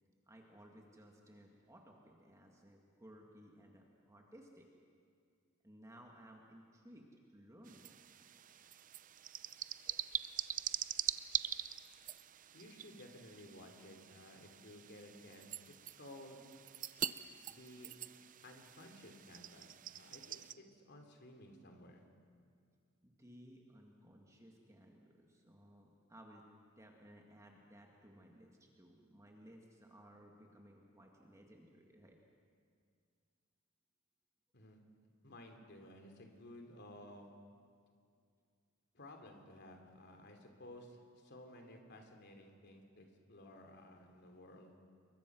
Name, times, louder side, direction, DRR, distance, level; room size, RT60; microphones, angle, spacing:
voice 1, 0.3-4.7 5.6-8.2 9.8-10.1 23.0-26.4 26.7-32.2, equal, 15° right, 1 dB, 1.9 m, -59 dB
sound 1, 7.6-20.5, right 10 dB, 40° right, 0.6 m, -44 dB
voice 2, 12.5-15.5 16.0-16.4 17.5-17.9 18.4-22.0 34.5-34.8 35.2-37.3 38.9-44.7, left 1 dB, 55° left, 4 dB, 3.0 m, -55 dB
28.0 x 22.5 x 6.2 m, 2.2 s
head